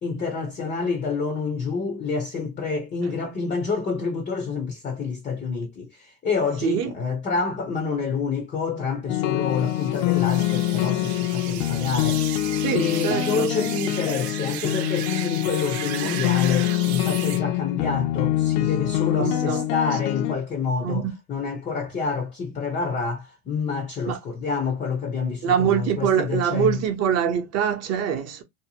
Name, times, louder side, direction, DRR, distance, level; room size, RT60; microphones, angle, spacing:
voice 1, 0.0-26.8, left 5 dB, 20° left, 0.5 m, -28 dB
voice 2, 6.6-6.9 12.6-13.5 19.2-19.6 20.8-21.1 24.1-24.2 25.4-28.4, right 8 dB, 35° right, 0.7 m, -24 dB
sound 1, 9.1-20.3, left 14 dB, 80° left, 0.6 m, -25 dB
sound 2, 9.5-17.4, right 10 dB, 70° right, 0.8 m, -35 dB
2.7 x 2.2 x 2.7 m
supercardioid pair, 135°, 46 cm